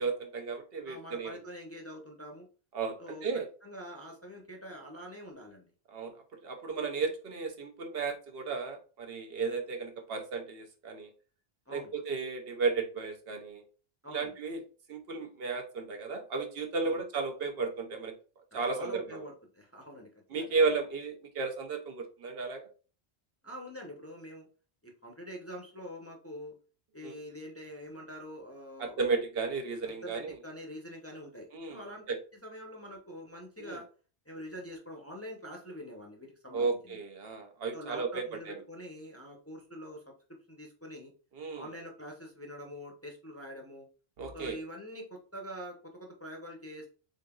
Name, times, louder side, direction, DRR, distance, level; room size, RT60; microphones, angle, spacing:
voice 1, 0.0-1.4 2.7-3.5 5.9-11.1 11.7-13.6 14.1-14.6 14.9-18.1 18.5-19.2 20.3-22.7 27.0-27.1 28.8-30.4 31.5-31.8 32.1-32.2 33.6-33.8 36.5-38.6 41.3-41.7 44.2-44.6, right 4 dB, 70° right, 5 dB, 0.9 m, -34 dB
voice 2, 0.8-2.5 3.0-5.7 11.7-11.9 14.0-14.3 16.8-17.0 18.5-20.1 20.4-20.7 23.4-24.5 24.8-26.5 26.9-29.1 29.9-32.1 32.4-33.8 34.3-36.8 37.7-40.0 40.5-41.1 41.5-43.9 44.3-46.9, equal, 15° left, 1 dB, 0.6 m, -45 dB
3.8 x 3.7 x 2.3 m, 0.37 s
omnidirectional pair, 1.1 m